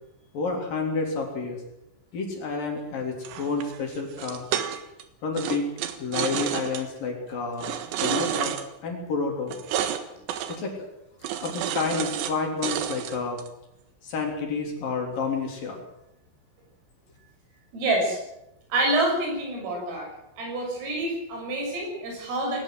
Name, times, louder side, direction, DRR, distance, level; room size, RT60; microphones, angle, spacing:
voice 1, 0.3-1.6 2.1-4.5 5.2-5.7 6.0-7.7 8.0-8.6 8.8-9.6 10.5-10.9 11.4-13.4 14.0-15.8, left 4 dB, 45° left, 2 dB, 4.8 m, -29 dB
sound 1, 3.2-5.0 5.4-6.8 7.6-8.6 9.5-10.0 10.3-10.6 11.2-12.3 12.6-13.5, right 10 dB, 70° right, 3.4 m, -30 dB
voice 2, 17.7-18.2 18.7-20.1 20.4-22.6, right 2 dB, 85° right, 1 dB, 9.6 m, -27 dB
20.0 x 18.5 x 7.9 m, 0.85 s
omnidirectional pair, 5.8 m